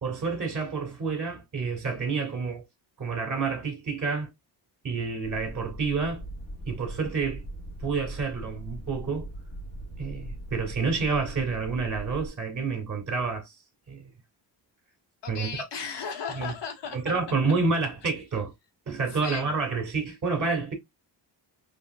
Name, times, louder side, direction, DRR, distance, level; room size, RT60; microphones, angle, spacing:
voice 1, 0.0-2.6 3.0-4.3 4.8-6.2 6.7-7.4 7.8-9.3 10.0-13.5 13.9-14.0 15.3-15.5 16.4-16.5 16.9-18.5 18.9-20.7, right 4 dB, 45° right, 2.3 m, -29 dB
sound 1, 5.2-12.3, right 1 dB, 35° left, 2.0 m, -40 dB
voice 2, 15.2-17.2 19.1-19.5, left 6 dB, 70° left, 1.5 m, -36 dB
3.9 x 3.4 x 2.3 m
cardioid pair, 80°, 43 cm